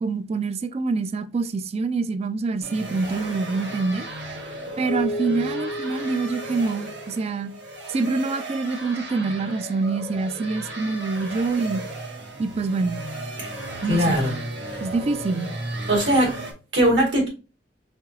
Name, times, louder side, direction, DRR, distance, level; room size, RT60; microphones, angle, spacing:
voice 1, 0.0-4.1 4.8-7.5 7.9-11.8 12.4-13.0 13.8-14.2 14.8-15.5, right 3 dB, 35° right, 0.3 m, -26 dB
sound 1, 2.6-16.5, right 1 dB, 90° right, 1.2 m, -35 dB
Keyboard (musical), 4.9-7.9, equal, 55° left, 0.4 m, -33 dB
voice 2, 13.9-14.4 14.7-14.8 15.9-16.4 16.7-17.3, equal, 75° right, 2.0 m, -20 dB
4.3 x 3.8 x 2.3 m
head